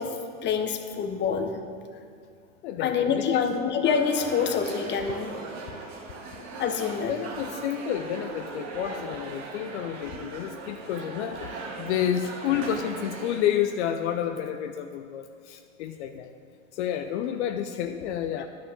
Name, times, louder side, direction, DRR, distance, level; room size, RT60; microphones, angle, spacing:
voice 1, 0.0-1.6 2.8-5.4 6.6-7.1, left 6 dB, 30° left, 6 dB, 1.0 m, -26 dB
voice 2, 2.6-3.4 7.1-16.3 16.7-18.5, left 9 dB, 60° left, 7 dB, 0.6 m, -30 dB
sound 1, 3.8-13.4, right 3 dB, 45° right, 2.0 m, -39 dB
10.5 x 6.2 x 7.0 m, 2.3 s
hypercardioid pair, 105°, 39 cm